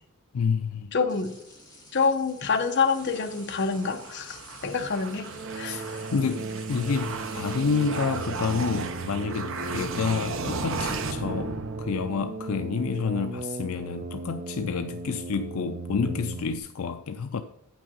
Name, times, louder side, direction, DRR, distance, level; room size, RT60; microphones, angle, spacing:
voice 1, 0.3-0.9 5.6-5.8 6.1-17.4, left 5 dB, 75° left, 0.5 m, -29 dB
voice 2, 0.9-1.3 1.9-5.8, left 5 dB, 50° left, 0.9 m, -27 dB
sound 1, 1.1-8.7, left 2 dB, 20° left, 3.4 m, -51 dB
sound 2, 3.0-12.4, right 3 dB, 60° right, 0.8 m, -35 dB
sound 3, 5.3-16.6, right 4 dB, 40° right, 0.5 m, -37 dB
8.7 x 5.9 x 5.3 m
head